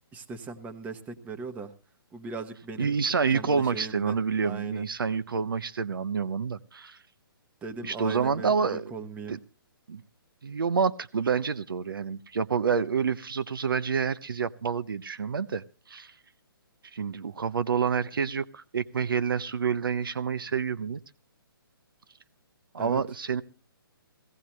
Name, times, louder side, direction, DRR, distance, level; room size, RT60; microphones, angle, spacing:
voice 1, 0.1-1.7 2.1-2.9 3.3-4.2 4.4-4.9 7.6-9.4 22.8-23.0, right 4 dB, 10° right, 5 dB, 1.1 m, -39 dB
voice 2, 2.8-7.0 7.8-8.9 9.3-9.4 9.9-10.0 10.4-16.1 16.9-21.0 22.7-23.4, right 6 dB, 65° right, 14 dB, 0.6 m, -28 dB
17.0 x 16.5 x 3.1 m, 0.35 s
figure-of-eight pair, 130°, 12 cm